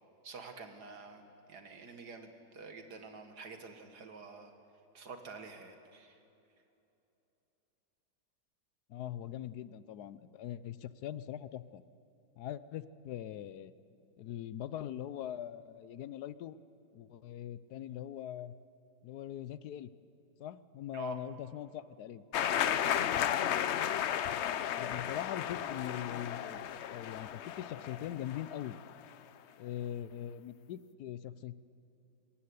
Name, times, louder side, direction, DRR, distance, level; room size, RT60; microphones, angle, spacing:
voice 1, 0.2-4.5 4.9-6.2 20.9-21.2 22.7-23.0, right 5 dB, 65° right, 5 dB, 2.3 m, -48 dB
voice 2, 8.9-11.8 12.4-13.7 14.2-16.6 16.9-18.6 19.0-19.9 20.4-22.2 24.7-28.8 29.6-31.5, left 11 dB, 70° left, 15 dB, 1.1 m, -42 dB
sound 1, 22.3-29.0, left 10 dB, 90° left, 0.6 m, -34 dB
25.0 x 14.5 x 9.7 m, 2.9 s
omnidirectional pair, 1.9 m